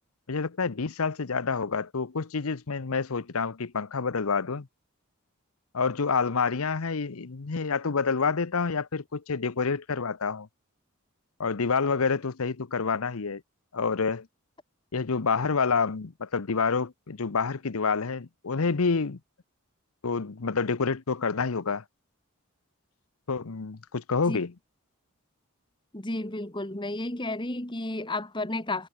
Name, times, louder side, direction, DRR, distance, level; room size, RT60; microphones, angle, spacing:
voice 1, 0.3-4.7 5.7-10.5 11.4-13.4 13.7-14.3 14.9-19.2 20.0-21.8 23.3-24.5, left 5 dB, 80° left, 0.8 m, -28 dB
voice 2, 25.9-28.9, left 2 dB, 20° left, 1.8 m, -32 dB
head